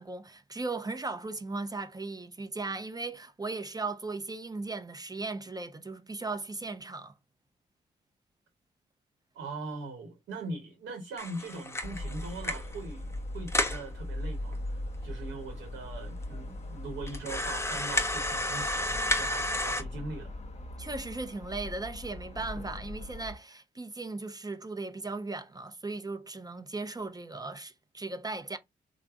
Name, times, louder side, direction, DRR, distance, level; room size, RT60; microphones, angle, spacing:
voice 1, 0.0-7.1 20.8-28.6, right 3 dB, 20° right, 0.6 m, -37 dB
voice 2, 9.3-13.1 13.3-20.3, right 3 dB, 75° right, 0.9 m, -41 dB
sound 1, 11.2-12.8 13.1-13.2 13.5-13.8 14.5-14.6 14.9-15.0 15.6-15.7 16.2-16.3 17.1-19.8, left 1 dB, 15° left, 0.8 m, -31 dB
sound 2, 11.8-23.4, left 1 dB, 35° left, 0.9 m, -40 dB
3.3 x 2.1 x 3.5 m
hypercardioid pair, 40°, 19 cm